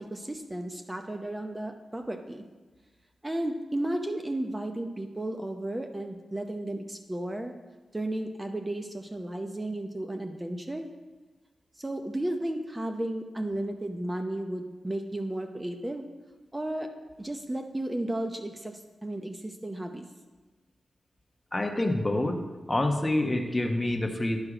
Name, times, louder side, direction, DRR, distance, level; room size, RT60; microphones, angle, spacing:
voice 1, 0.0-2.4 3.2-7.5 7.9-10.9 11.8-16.1 16.5-16.9 17.2-20.1, right 1 dB, 20° right, 5 dB, 0.7 m, -33 dB
voice 2, 21.5-22.4 22.7-24.4, left 1 dB, 20° left, 4 dB, 1.0 m, -27 dB
11.0 x 4.7 x 4.9 m, 1.3 s
cardioid pair, 55°, 0 cm